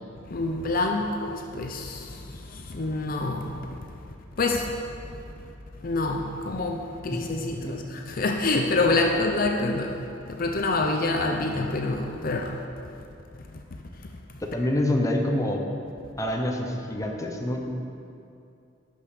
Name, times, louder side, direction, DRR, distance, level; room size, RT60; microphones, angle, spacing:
voice 1, 0.3-2.1 2.7-3.5 4.4-4.7 5.8-9.9 10.3-12.5, left 2 dB, 50° left, 2 dB, 0.6 m, -26 dB
voice 2, 14.5-15.6 16.2-17.7, left 1 dB, 15° left, 1 dB, 0.9 m, -26 dB
10.5 x 5.4 x 6.6 m, 2.6 s
head